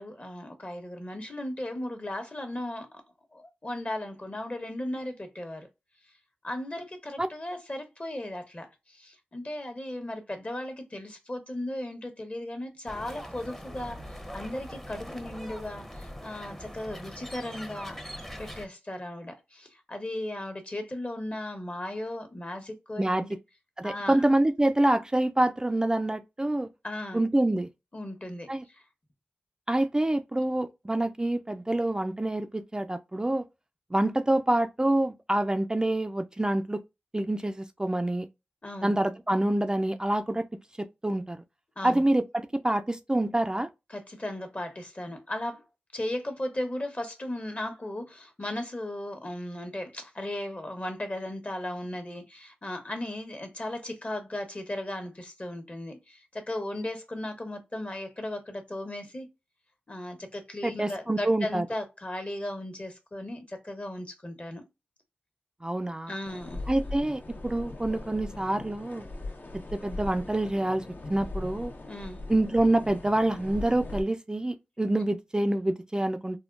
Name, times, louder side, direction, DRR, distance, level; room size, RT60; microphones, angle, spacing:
voice 1, 0.0-2.9 3.3-5.7 6.4-18.0 18.4-23.3 23.8-24.2 26.8-27.2 27.9-28.8 38.6-38.9 41.8-42.0 43.9-45.6 45.9-59.3 59.9-64.6 66.1-66.6 71.8-72.2, left 1 dB, 35° left, 0.9 m, -36 dB
sound 1, 12.9-18.7, equal, 10° left, 0.7 m, -42 dB
voice 2, 23.8-26.7 27.1-27.7 28.5-28.6 29.7-33.5 33.9-36.8 37.1-38.3 38.8-40.5 40.8-41.4 41.8-43.7 60.6-61.6 65.6-66.1 66.7-69.1 69.7-70.8 71.1-71.7 72.3-76.4, right 1 dB, 20° right, 0.3 m, -26 dB
sound 2, 66.2-74.0, left 2 dB, 55° left, 0.6 m, -39 dB
3.5 x 2.2 x 2.4 m
cardioid pair, 40°, 4 cm